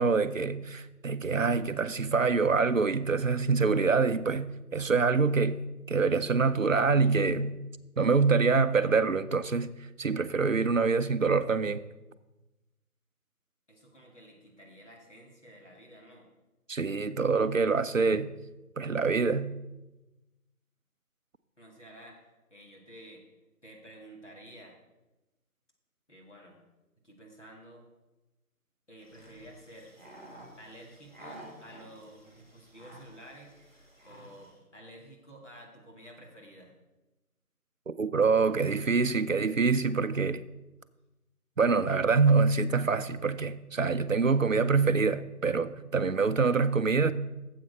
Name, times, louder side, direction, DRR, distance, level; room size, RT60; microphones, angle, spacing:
voice 1, 0.0-5.6 5.9-7.6 8.0-9.7 10.0-11.8 16.7-18.3 18.8-19.5 37.9-40.4 41.6-47.1, right 4 dB, 60° right, 0.5 m, -25 dB
voice 2, 13.7-16.3 21.6-22.2 22.5-23.2 23.6-24.8 26.1-26.6 27.0-27.9 28.9-29.9 30.5-33.5 34.1-36.8, equal, 50° left, 2.0 m, -51 dB
sound 1, 29.0-34.6, right 1 dB, 30° right, 1.8 m, -51 dB
8.7 x 7.5 x 5.2 m
figure-of-eight pair, 180°, 46 cm